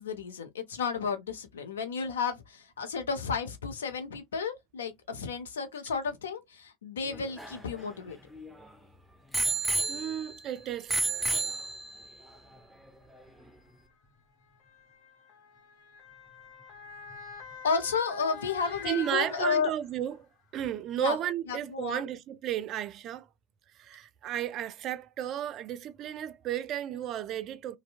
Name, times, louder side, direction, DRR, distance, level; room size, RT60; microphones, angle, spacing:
voice 1, 0.0-8.2 17.6-19.7 21.0-21.2 21.5-22.0, left 5 dB, 75° left, 0.5 m, -32 dB
Bicycle bell, 7.0-8.7 9.3-10.5 10.9-12.2 12.9-13.0, right 3 dB, ahead, 0.6 m, -31 dB
voice 2, 9.9-11.0 18.8-20.3 20.5-23.3 23.8-27.8, right 11 dB, 45° right, 0.3 m, -33 dB
Motor vehicle (road) / Siren, 10.2-10.3 11.2-11.4 12.5-20.1 20.6-20.7, left 5 dB, 50° left, 0.9 m, -46 dB
2.6 x 2.0 x 2.4 m
figure-of-eight pair, 80°, 0 cm